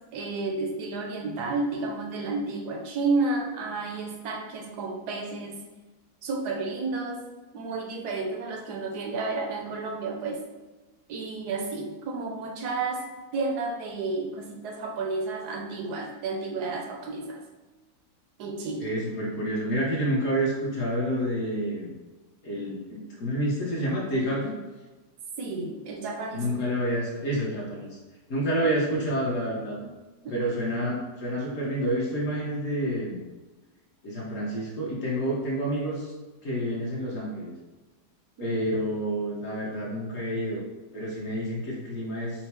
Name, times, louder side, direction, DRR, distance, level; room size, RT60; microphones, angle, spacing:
voice 1, 0.1-5.6 6.2-7.2 7.5-10.4 11.1-17.4 18.4-18.9 25.4-26.5 30.2-30.5 38.4-38.6, right 3 dB, 75° right, 2 dB, 1.1 m, -31 dB
voice 2, 18.8-21.9 22.4-24.5 26.3-28.0 28.3-29.9 30.3-33.2 34.0-36.1 36.4-37.5 38.4-40.6 40.9-42.5, right 1 dB, 55° left, -4 dB, 1.1 m, -29 dB
4.5 x 2.0 x 4.2 m, 1.2 s
omnidirectional pair, 1.8 m